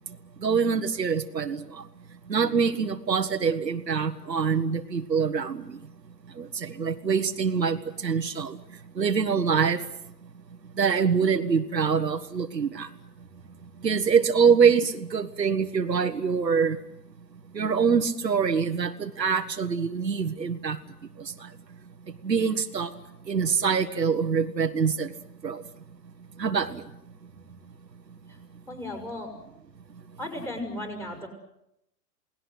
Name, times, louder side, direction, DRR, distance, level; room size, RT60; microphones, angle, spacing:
voice 1, 0.4-1.9 2.3-5.8 6.3-8.6 8.9-9.8 10.8-12.9 13.8-16.8 17.5-20.8 21.2-21.5 22.2-22.9 23.3-25.1 25.4-25.6 26.4-26.8, right 6 dB, 85° right, 9 dB, 1.5 m, -25 dB
voice 2, 28.7-29.3 30.2-31.3, left 1 dB, 5° left, 5 dB, 5.9 m, -35 dB
28.0 x 19.0 x 8.1 m, 0.83 s
figure-of-eight pair, 110°, 49 cm